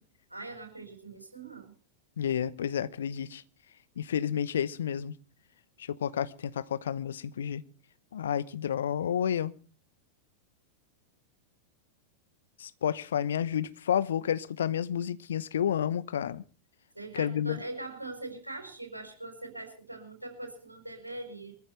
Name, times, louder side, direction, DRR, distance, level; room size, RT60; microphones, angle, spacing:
voice 1, 0.3-1.7 16.9-21.5, right 2 dB, 85° right, 5.0 m, -42 dB
voice 2, 2.2-3.4 4.0-5.1 5.9-7.6 8.1-9.5 12.6-16.4 17.2-17.6, left 9 dB, 65° left, 0.9 m, -30 dB
24.0 x 14.5 x 3.3 m
figure-of-eight pair, 90°, 0 cm